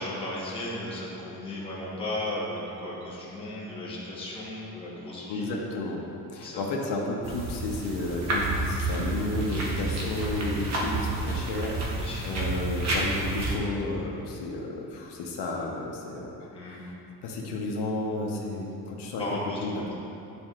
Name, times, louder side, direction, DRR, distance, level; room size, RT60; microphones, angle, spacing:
voice 1, 0.0-5.4 6.4-6.6 11.9-12.2 16.5-16.8 19.2-19.9, left 1 dB, 15° left, -7 dB, 1.1 m, -35 dB
voice 2, 5.3-6.0 6.3-16.5 16.8-16.9 17.2-19.9, left 2 dB, 85° left, -1 dB, 0.9 m, -32 dB
sound 1, 7.2-13.5, right 2 dB, 45° right, 0.9 m, -30 dB
9.3 x 4.3 x 2.4 m, 2.8 s
cardioid pair, 160°, 38 cm